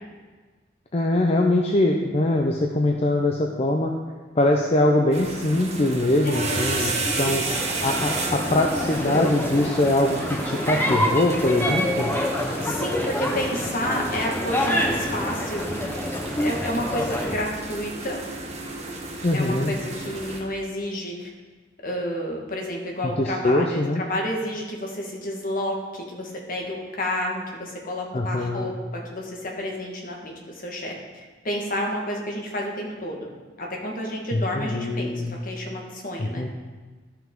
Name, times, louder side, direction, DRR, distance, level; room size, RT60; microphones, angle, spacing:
voice 1, 0.9-3.9 4.4-7.4 7.8-12.1 19.2-19.7 23.0-24.0 28.1-28.7 34.3-35.4 36.2-36.5, left 1 dB, 35° left, 1 dB, 0.6 m, -22 dB
sound 1, 5.1-20.4, right 2 dB, 40° right, 1.2 m, -33 dB
voice 2, 6.2-7.6 12.6-15.7 16.4-18.2 19.3-21.3 21.8-30.9 31.4-33.3 33.6-36.4, left 1 dB, 50° left, 0 dB, 1.5 m, -30 dB
sound 2, 7.5-17.3, left 1 dB, 10° left, 0.9 m, -27 dB
12.5 x 5.8 x 3.7 m, 1.4 s
head